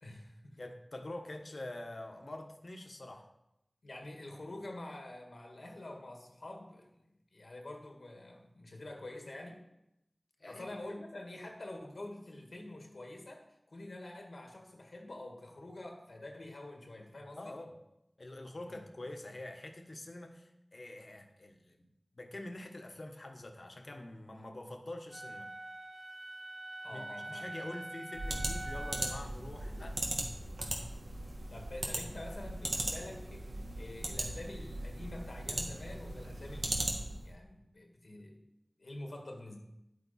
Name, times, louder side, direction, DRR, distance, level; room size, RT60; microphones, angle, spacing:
voice 1, 0.0-0.6 3.8-9.6 10.5-17.6 18.7-18.8 26.8-27.8 31.5-38.4 38.8-39.6, left 1 dB, 85° left, 2 dB, 1.8 m, -47 dB
voice 2, 0.6-3.3 10.4-10.7 17.4-17.8 18.2-25.5 26.9-30.0, left 1 dB, 65° left, 4 dB, 1.3 m, -46 dB
Wind instrument woodwind instrument, 25.1-29.3, right 2 dB, 55° right, 2.2 m, -44 dB
sound 1, 28.1-37.3, right 1 dB, 90° right, 1.5 m, -38 dB
10.5 x 8.6 x 4.3 m, 0.85 s
wide cardioid pair, 40°, 0 cm